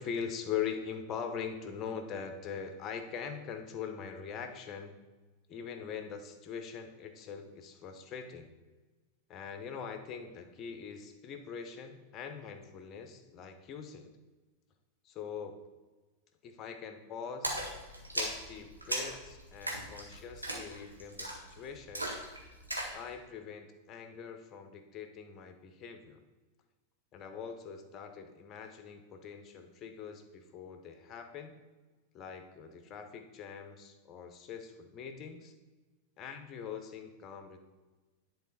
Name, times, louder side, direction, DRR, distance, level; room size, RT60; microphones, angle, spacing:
voice 1, 0.0-5.0 5.5-8.5 9.3-14.1 15.0-15.6 16.4-17.6 18.1-22.1 22.9-26.2 27.1-31.5 32.1-35.5 36.2-37.6, left 7 dB, 30° left, 7 dB, 0.9 m, -42 dB
Splash splatter, 17.4-23.0, right 1 dB, 85° right, 1.4 m, -38 dB
10.5 x 4.2 x 4.1 m, 1.2 s
figure-of-eight pair, 90°, 0 cm